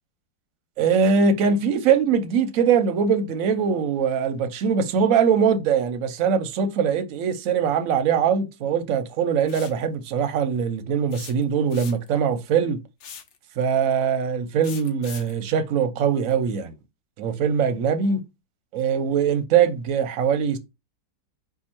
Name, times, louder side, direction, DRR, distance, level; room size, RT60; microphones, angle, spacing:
voice 1, 0.8-12.8 13.6-16.7 17.2-18.2 18.7-20.6, right 6 dB, 60° right, 0.9 m, -22 dB
sound 1, 9.5-9.8 11.1-12.2 13.0-13.4 14.6-15.4, left 7 dB, 60° left, 0.8 m, -40 dB
4.7 x 2.5 x 4.3 m
omnidirectional pair, 1.9 m